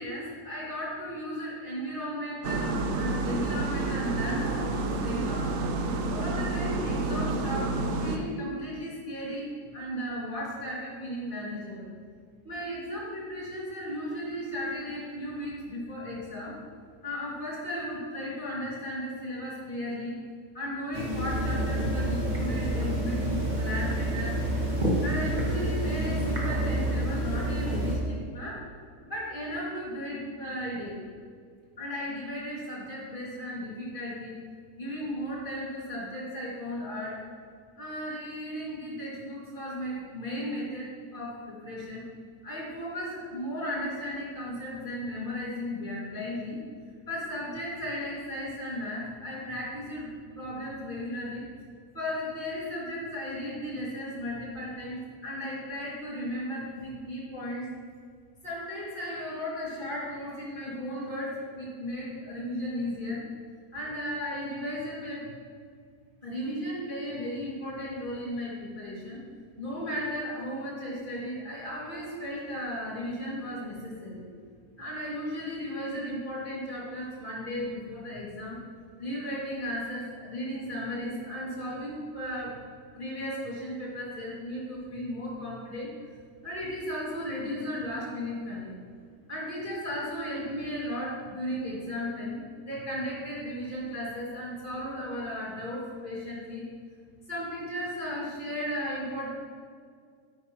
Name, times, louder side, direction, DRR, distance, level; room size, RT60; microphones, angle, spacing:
voice 1, 0.0-5.6 6.1-11.9 12.4-16.6 17.0-20.2 20.5-24.4 25.0-28.6 29.1-31.0 31.8-34.3 34.8-37.2 37.8-42.0 42.4-46.6 47.1-51.4 51.9-57.7 58.4-63.2 63.7-65.3 66.2-69.2 69.6-74.2 74.8-78.6 79.0-82.7 82.9-85.9 86.4-88.7 89.3-96.6 97.3-99.3, equal, 30° left, -6 dB, 2.5 m, -35 dB
sound 1, 2.4-8.2, right 2 dB, 60° right, 0.8 m, -29 dB
sound 2, 20.9-28.0, right 1 dB, 30° right, 1.4 m, -28 dB
9.2 x 8.7 x 3.0 m, 2.1 s
omnidirectional pair, 1.7 m